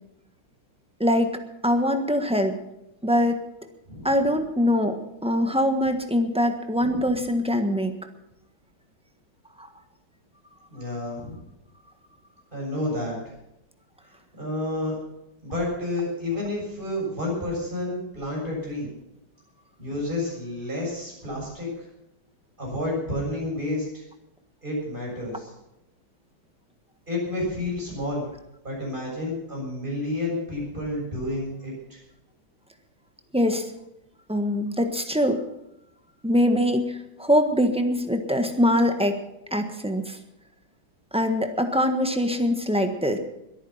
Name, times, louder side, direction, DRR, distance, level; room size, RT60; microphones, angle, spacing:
voice 1, 1.0-2.6 3.0-3.4 4.0-7.9 9.6-9.7 33.3-33.7 34.3-35.4 36.2-39.2 39.5-40.2 41.1-43.2, equal, 5° right, 6 dB, 1.1 m, -23 dB
voice 2, 10.7-11.4 12.5-13.2 14.4-15.0 15.4-18.9 19.8-21.9 22.6-24.0 24.6-25.5 27.1-28.3 28.6-32.0, left 1 dB, 25° right, -2 dB, 7.3 m, -30 dB
22.0 x 9.5 x 5.8 m, 0.87 s
omnidirectional pair, 2.2 m